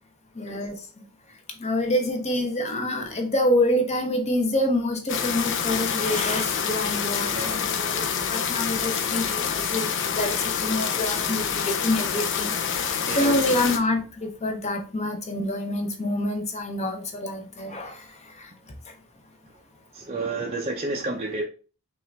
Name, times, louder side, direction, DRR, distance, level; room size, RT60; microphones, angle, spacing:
voice 1, 0.3-0.8 1.6-12.9 13.2-18.5, left 1 dB, 30° left, 0.9 m, -27 dB
sound 1, 5.1-13.8, left 7 dB, 60° left, 0.6 m, -27 dB
voice 2, 7.3-7.7 13.1-13.3 19.9-21.4, right 2 dB, 30° right, 0.5 m, -30 dB
5.5 x 2.5 x 3.4 m
head